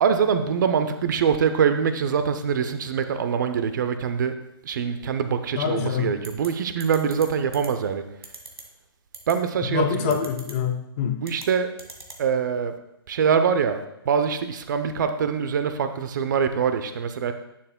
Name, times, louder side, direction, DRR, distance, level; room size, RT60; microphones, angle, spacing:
voice 1, 0.0-4.3 4.6-8.0 9.3-10.2 11.2-11.7 12.2-12.7 13.1-17.3, right 7 dB, 50° right, 9 dB, 0.7 m, -24 dB
voice 2, 5.6-6.2 9.7-11.2, left 7 dB, 30° left, 6 dB, 0.8 m, -25 dB
sound 1, 6.2-6.5 6.8-7.2 7.5-7.7 8.2-8.6 9.1-9.3 10.1-10.5 11.2-11.5 11.8-12.2, right 3 dB, 90° right, 1.7 m, -39 dB
10.5 x 6.9 x 2.2 m, 0.84 s
hypercardioid pair, 140°, 13 cm